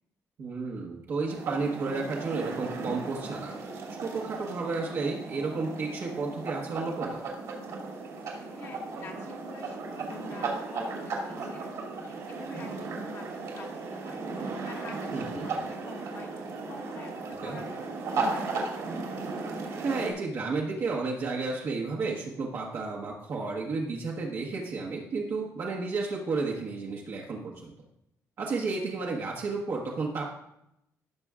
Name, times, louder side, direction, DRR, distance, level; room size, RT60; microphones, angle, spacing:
voice 1, 0.4-3.6 4.0-7.2 15.1-15.5 17.4-17.6 19.8-27.7 28.4-30.3, right 4 dB, 50° right, -2 dB, 1.2 m, -32 dB
sound 1, 1.3-20.1, right 3 dB, 70° right, 2.4 m, -36 dB
voice 2, 8.3-18.0 18.3-18.6, left 3 dB, 55° left, -1 dB, 2.0 m, -47 dB
16.0 x 6.7 x 2.4 m, 0.82 s
cardioid pair, 175°, 6 cm